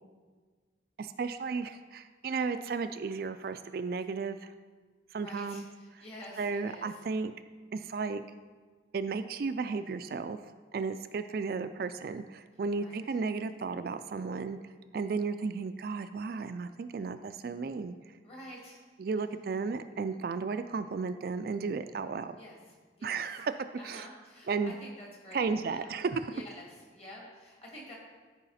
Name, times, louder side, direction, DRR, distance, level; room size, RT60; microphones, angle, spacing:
voice 1, 1.0-4.5 5.1-5.7 6.4-7.3 7.7-8.2 8.9-10.4 10.7-14.6 14.9-17.9 19.0-22.3 23.0-23.6 23.8-24.1 24.5-24.7 25.3-26.3, right 4 dB, 55° right, 10 dB, 0.3 m, -34 dB
voice 2, 5.1-7.0 12.7-13.0 18.2-18.8 22.3-22.6 23.0-23.4 23.8-25.9 26.3-27.9, left 1 dB, 35° left, -3 dB, 2.2 m, -49 dB
13.5 x 4.9 x 4.2 m, 1.4 s
head